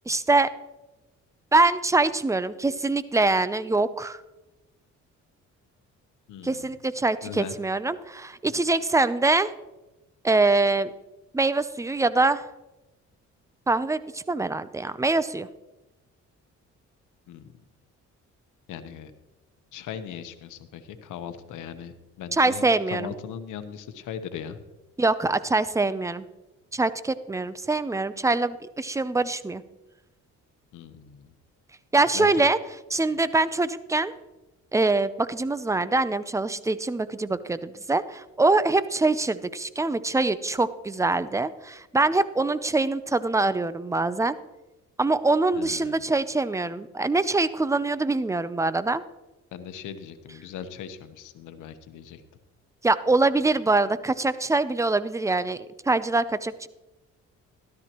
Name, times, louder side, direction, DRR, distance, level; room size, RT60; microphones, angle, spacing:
voice 1, 0.1-0.5 1.5-4.2 6.4-9.5 10.2-10.9 11.3-12.4 13.7-15.5 22.3-23.1 25.0-26.2 26.7-29.6 31.9-32.6 32.9-34.1 34.7-44.4 45.0-49.0 52.8-55.6 55.9-56.7, right 3 dB, 10° right, 14 dB, 0.5 m, -24 dB
voice 2, 6.3-6.7 7.2-7.5 17.3-17.5 18.7-19.1 19.7-24.6 30.7-31.3 32.1-32.5 45.5-46.0 49.5-52.2, left 8 dB, 85° left, 10 dB, 1.0 m, -39 dB
13.0 x 12.5 x 3.0 m, 1.0 s
cardioid pair, 90°, 30 cm